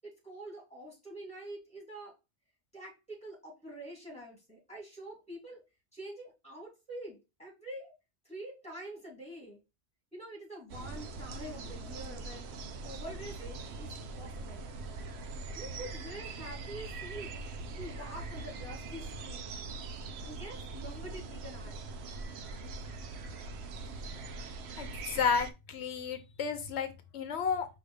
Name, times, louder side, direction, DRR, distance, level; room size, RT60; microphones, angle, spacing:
voice 1, 0.0-2.1 2.7-5.6 5.9-7.9 8.2-9.6 10.1-12.4 12.8-14.6 15.5-17.3 17.8-19.4 20.2-21.9, right 1 dB, 5° left, -3 dB, 3.0 m, -46 dB
sound 1, 10.7-25.5, right 3 dB, 75° right, 0.9 m, -42 dB
voice 2, 24.8-27.7, left 6 dB, 85° left, 9 dB, 1.0 m, -32 dB
5.0 x 3.0 x 3.2 m, 0.26 s
omnidirectional pair, 1.1 m